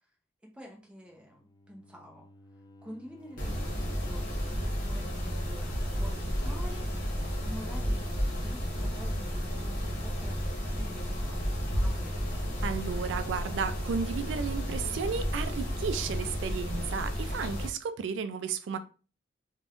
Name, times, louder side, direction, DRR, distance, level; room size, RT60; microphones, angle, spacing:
voice 1, 0.4-2.3 2.8-7.0 7.4-8.1 8.3-12.2, equal, 5° right, 0.6 m, -48 dB
Bowed string instrument, 1.0-4.7, left 1 dB, 25° left, 0.3 m, -54 dB
Mechanisms, 3.4-17.7, equal, 50° left, 1.0 m, -32 dB
voice 2, 12.6-18.8, right 6 dB, 85° right, 0.3 m, -33 dB
2.5 x 2.2 x 3.5 m
head